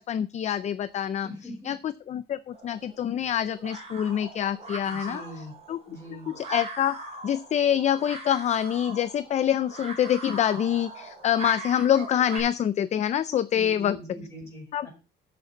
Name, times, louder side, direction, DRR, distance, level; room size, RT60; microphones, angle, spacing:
voice 1, 0.0-1.3 1.6-5.8 6.1-7.0 7.2-14.0 14.7-14.9, left 10 dB, 40° left, 15 dB, 0.4 m, -26 dB
voice 2, 1.2-1.7 4.8-5.5 5.9-6.3 13.5-14.9, equal, 15° left, -2 dB, 5.6 m, -41 dB
sound 1, 2.5-12.4, right 2 dB, 35° right, 4.9 m, -40 dB
7.9 x 6.8 x 7.0 m, 0.33 s
cardioid pair, 175°, 19 cm